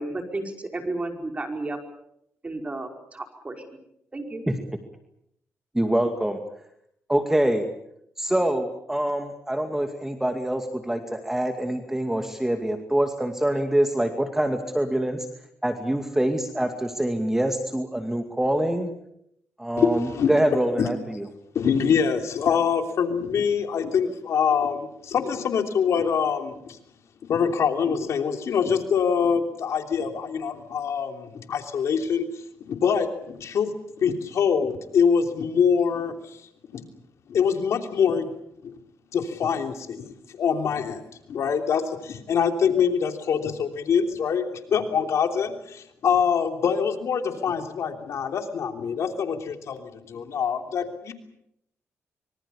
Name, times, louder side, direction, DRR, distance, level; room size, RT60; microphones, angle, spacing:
voice 1, 0.0-1.8 2.4-3.8 4.1-4.4, right 2 dB, 25° right, 4 dB, 5.1 m, -32 dB
voice 2, 5.7-6.4 7.1-7.7 8.2-15.3 15.6-18.9 19.6-21.2, right 1 dB, 10° right, 5 dB, 2.3 m, -25 dB
voice 3, 19.8-20.3 20.8-20.9 21.5-26.8 27.3-32.2 32.7-33.7 34.0-36.1 36.7-36.8 37.3-38.3 38.6-38.7 39.1-41.0 41.3-51.1, left 7 dB, 70° left, 5 dB, 3.2 m, -24 dB
25.0 x 24.0 x 7.1 m, 0.76 s
cardioid pair, 105°, 5 cm